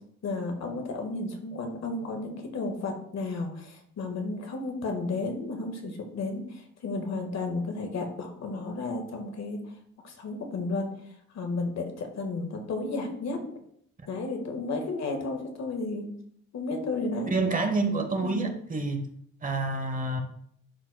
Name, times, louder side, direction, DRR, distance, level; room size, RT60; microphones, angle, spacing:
voice 1, 0.2-9.6 10.0-10.9 11.3-13.4 14.1-16.1 16.5-17.3 18.2-18.5, left 3 dB, 60° left, 4 dB, 1.7 m, -33 dB
voice 2, 17.3-19.1 19.4-20.2, right 3 dB, 25° right, 5 dB, 1.2 m, -28 dB
11.5 x 4.5 x 2.3 m, 0.66 s
cardioid pair, 90°, 30 cm